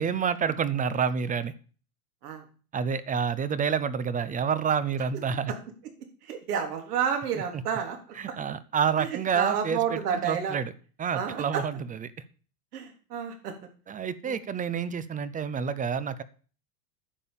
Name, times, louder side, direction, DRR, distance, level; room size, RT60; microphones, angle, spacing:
voice 1, 0.0-1.5 2.7-5.5 7.5-7.6 8.2-10.7 11.0-12.1 13.9-16.2, right 7 dB, 20° right, 16 dB, 0.6 m, -28 dB
voice 2, 6.3-8.0 8.3-8.4 9.0-10.6 11.1-11.6 12.7-13.5 14.2-14.4, right 8 dB, 80° right, 4 dB, 3.8 m, -30 dB
10.0 x 6.7 x 7.1 m, 0.39 s
hypercardioid pair, 120°, 46 cm